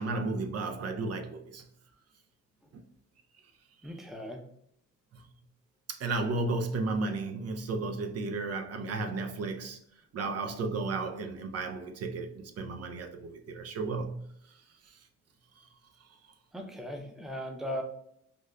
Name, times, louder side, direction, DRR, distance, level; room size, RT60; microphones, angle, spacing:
voice 1, 0.0-1.6 2.7-2.8 3.8-3.9 5.1-5.2 5.9-9.8 10.1-15.0 16.0-16.1, right 3 dB, 55° right, 0.5 m, -34 dB
voice 2, 3.8-4.4 16.5-17.8, equal, ahead, 0.6 m, -38 dB
4.9 x 2.1 x 2.2 m
cardioid pair, 90°, 30 cm